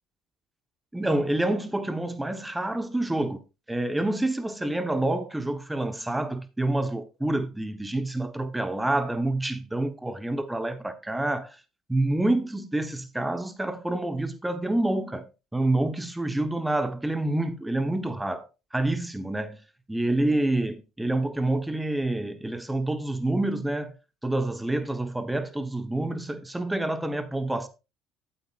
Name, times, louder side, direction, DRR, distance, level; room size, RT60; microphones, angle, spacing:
voice 1, 0.9-3.4 3.7-11.6 11.9-15.3 15.5-18.5 18.7-19.6 19.9-23.9 24.2-27.7, right 1 dB, 10° right, 1.1 m, -27 dB
11.5 x 8.7 x 2.5 m
supercardioid pair, 100°, 0 cm